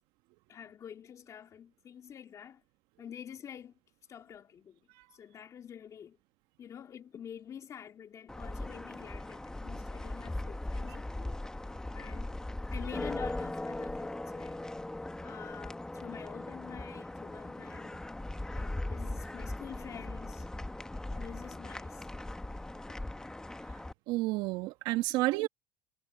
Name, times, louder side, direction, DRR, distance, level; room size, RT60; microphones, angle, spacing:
voice 1, 0.5-2.6 3.0-3.7 4.1-4.8 5.1-6.2 6.6-11.4 11.9-12.3 12.7-14.7 15.2-18.1 18.5-20.5 21.1-22.1 22.9-23.0 25.1-25.2, left 8 dB, 40° left, 2.8 m, -47 dB
sound 1, 8.3-23.9, left 1 dB, 5° left, 1.1 m, -39 dB
voice 2, 24.1-25.5, right 19 dB, 65° right, 1.2 m, -30 dB
supercardioid pair, 100°, 8 cm